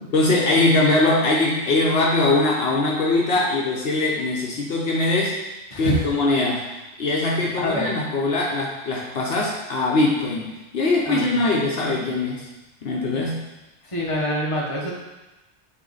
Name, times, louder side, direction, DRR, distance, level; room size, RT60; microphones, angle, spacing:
voice 1, 0.0-5.4 5.8-6.7 7.0-12.5 12.8-13.5, left 2 dB, 65° left, -3 dB, 1.0 m, -21 dB
voice 2, 5.7-6.1 7.6-7.9 11.1-11.4 13.9-14.9, equal, 30° left, -3 dB, 1.2 m, -25 dB
7.9 x 3.1 x 4.0 m, 1.0 s
omnidirectional pair, 1.1 m